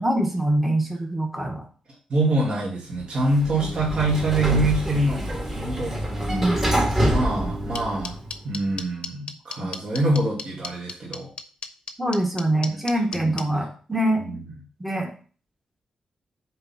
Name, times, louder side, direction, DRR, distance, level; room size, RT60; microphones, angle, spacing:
voice 1, 0.0-1.6 6.3-6.6 9.6-9.7 12.0-14.2 14.8-15.1, right 1 dB, 5° right, 1 dB, 1.1 m, -24 dB
voice 2, 2.1-5.9 7.0-8.2 8.4-11.3 13.1-13.6 14.2-14.5, right 2 dB, 50° right, -4 dB, 2.2 m, -25 dB
Sliding door, 3.2-8.4, equal, 25° right, 1.8 m, -26 dB
sound 1, 7.7-13.4, left 5 dB, 55° left, 0.8 m, -33 dB
6.8 x 4.6 x 5.5 m, 0.40 s
wide cardioid pair, 150°, 2 cm